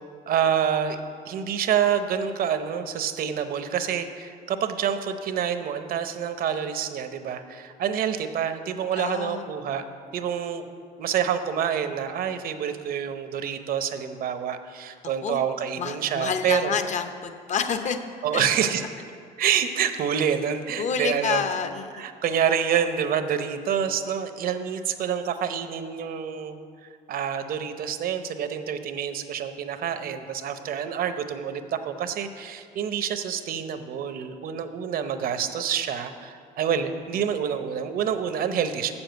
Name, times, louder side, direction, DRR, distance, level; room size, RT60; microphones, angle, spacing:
voice 1, 0.3-1.0 1.3-9.8 10.1-10.7 11.0-16.8 18.2-18.8 19.4-21.4 22.0-26.6 27.1-38.9, right 8 dB, 60° right, 9 dB, 0.7 m, -27 dB
voice 2, 9.0-9.5 15.2-15.4 15.8-18.0 18.3-18.4 20.8-22.0, left 6 dB, 45° left, 8 dB, 0.8 m, -28 dB
7.2 x 7.1 x 7.9 m, 2.2 s
cardioid pair, 110°, 17 cm